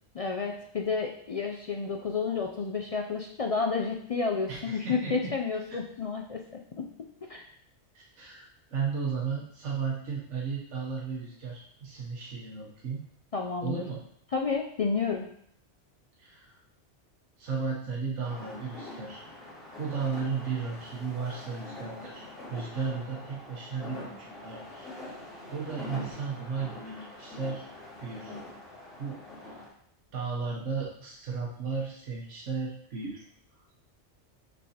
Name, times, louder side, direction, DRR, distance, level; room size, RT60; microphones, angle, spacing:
voice 1, 0.2-6.4 6.8-6.9 7.3-7.4 13.3-13.8 14.3-15.3, left 5 dB, 65° left, 2 dB, 0.3 m, -30 dB
voice 2, 4.5-5.3 5.7-5.8 7.9-13.0 13.6-14.0 16.2-16.6 17.4-19.2 19.8-24.9 25.5-27.7 28.0-28.3 29.0-29.5 30.1-33.2 33.5-33.6, right 5 dB, 90° right, -3 dB, 1.3 m, -35 dB
sound 1, 18.2-29.7, left 1 dB, ahead, 2.5 m, -44 dB
6.3 x 5.4 x 2.8 m, 0.67 s
omnidirectional pair, 1.2 m